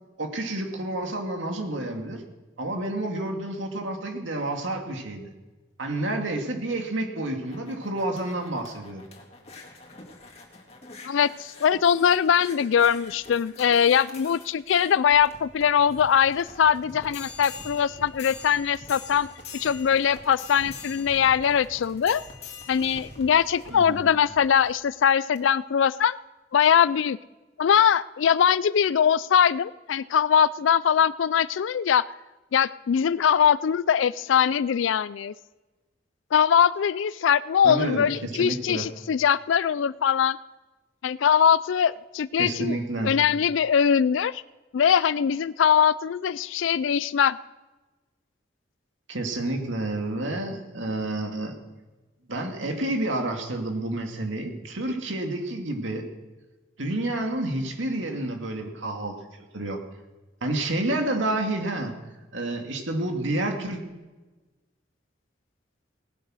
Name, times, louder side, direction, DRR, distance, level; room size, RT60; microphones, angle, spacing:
voice 1, 0.2-2.2 2.6-5.3 5.8-9.0 23.7-24.1 37.6-38.9 42.4-43.1 49.1-51.5 52.3-56.1 56.8-59.8 60.4-61.9 62.3-63.8, right 1 dB, 80° right, 3 dB, 2.3 m, -29 dB
sound 1, 7.1-24.8 25.4-25.5, left 4 dB, 30° left, 2.1 m, -45 dB
voice 2, 11.1-19.3 19.6-22.2 22.7-26.2 26.5-27.2 27.6-32.1 32.5-35.3 36.3-40.4 41.0-42.8 43.0-44.4 44.7-47.4, left 8 dB, 80° left, 19 dB, 0.4 m, -22 dB
18.0 x 10.5 x 6.3 m, 1.2 s
head